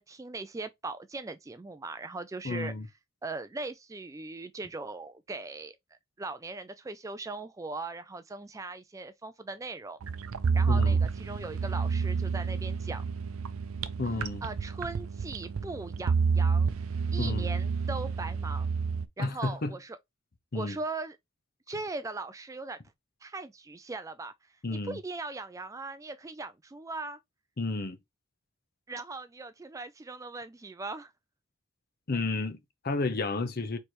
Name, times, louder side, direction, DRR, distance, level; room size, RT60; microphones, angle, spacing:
voice 1, 0.0-2.7 3.2-5.8 6.2-10.0 10.5-13.0 14.4-16.7 17.1-18.7 19.2-20.0 20.5-21.2 21.7-22.8 23.2-24.3 24.9-27.2 28.9-31.1, right 3 dB, 15° right, 0.3 m, -39 dB
voice 2, 2.4-2.9 10.7-11.0 14.0-14.4 17.2-17.5 19.2-19.8 20.5-20.8 24.6-25.0 27.6-28.0 32.1-33.8, left 3 dB, 45° left, 0.7 m, -31 dB
sound 1, 10.0-19.1, right 5 dB, 90° right, 0.5 m, -29 dB
4.3 x 3.3 x 3.0 m
head